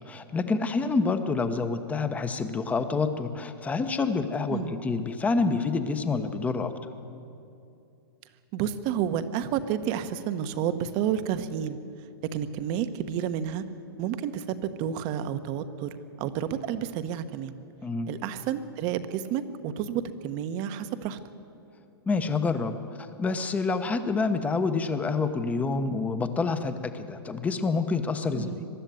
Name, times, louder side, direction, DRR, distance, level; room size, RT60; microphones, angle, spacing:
voice 1, 0.0-6.9 17.8-18.1 22.1-28.6, left 4 dB, 10° left, 9 dB, 1.1 m, -28 dB
voice 2, 8.5-11.8 12.2-13.6 14.0-15.9 16.2-17.6 18.1-21.2 28.3-28.7, right 9 dB, 35° right, 11 dB, 1.1 m, -30 dB
22.5 x 12.5 x 9.4 m, 2.7 s
hypercardioid pair, 145°, 13 cm